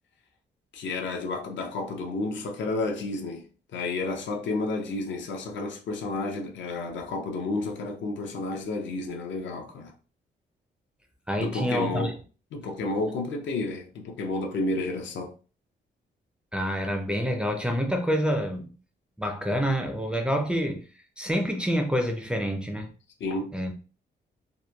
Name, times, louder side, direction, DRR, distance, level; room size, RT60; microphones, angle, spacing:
voice 1, 0.7-9.9 11.4-12.2 12.5-15.3 23.2-23.6, left 2 dB, 80° left, 0.6 m, -31 dB
voice 2, 11.3-12.1 16.5-18.7 19.2-20.9 21.2-22.9 23.5-23.9, equal, 5° right, 0.4 m, -27 dB
2.9 x 2.2 x 2.2 m
cardioid pair, 130°, 19 cm